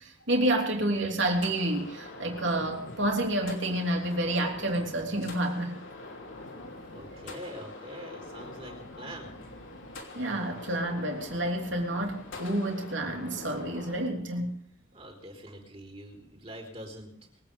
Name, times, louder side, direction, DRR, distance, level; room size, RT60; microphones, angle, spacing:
voice 1, 0.0-5.8 10.1-14.6, right 1 dB, 65° right, 2 dB, 3.3 m, -29 dB
sound 1, 1.3-14.1, left 2 dB, 70° left, 3.0 m, -44 dB
voice 2, 6.9-9.4 14.9-17.1, equal, 30° right, 0 dB, 4.0 m, -44 dB
22.5 x 9.1 x 5.3 m, 0.68 s
head